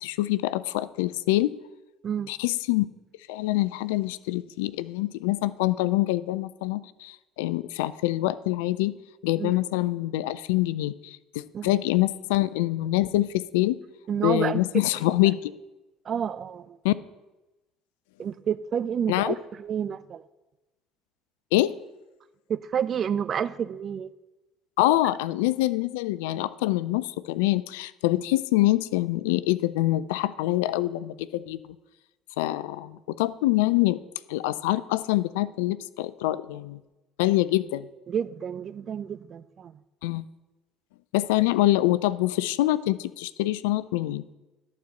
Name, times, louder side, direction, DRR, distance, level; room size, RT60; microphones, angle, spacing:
voice 1, 0.0-1.5 2.3-2.9 3.3-8.9 9.2-13.8 14.2-15.5 16.8-17.0 19.1-19.4 21.5-21.7 24.8-31.6 32.4-34.0 34.3-36.8 37.2-37.9 40.0-40.2 41.1-44.2, left 17 dB, 75° left, 17 dB, 0.3 m, -25 dB
voice 2, 14.1-14.6 16.1-16.8 18.2-20.2 22.5-24.1 38.1-39.7, right 8 dB, 45° right, 16 dB, 0.4 m, -29 dB
11.5 x 4.2 x 7.8 m, 1.0 s
hypercardioid pair, 60°, 0 cm